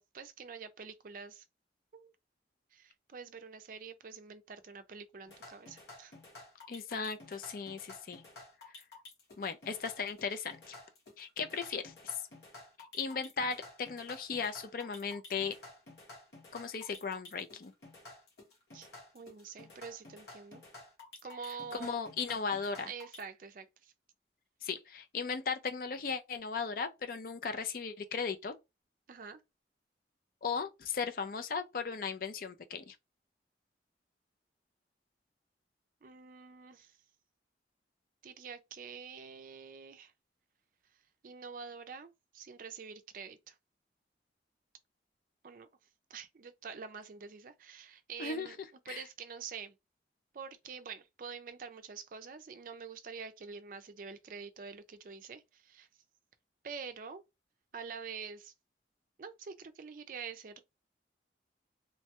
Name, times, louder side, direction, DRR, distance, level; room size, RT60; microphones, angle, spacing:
voice 1, 0.0-1.4 1.9-2.1 2.7-6.1 18.7-18.9 19.1-20.6 21.2-22.0 22.9-23.9 29.1-29.4 36.0-37.0 38.2-40.1 41.2-43.5 45.4-45.7 46.1-48.6 48.9-49.7 50.3-55.9 56.6-57.2 57.7-58.5 59.2-60.6, right 5 dB, 50° right, 0.4 m, -46 dB
sound 1, 5.3-23.2, left 2 dB, 65° left, 1.3 m, -52 dB
voice 2, 6.7-8.2 9.4-10.7 11.2-12.2 12.9-15.5 16.5-17.7 21.8-22.9 24.6-28.5 30.4-33.0 48.2-48.5 48.9-49.0, left 5 dB, 50° left, 0.4 m, -37 dB
3.1 x 2.2 x 2.9 m
head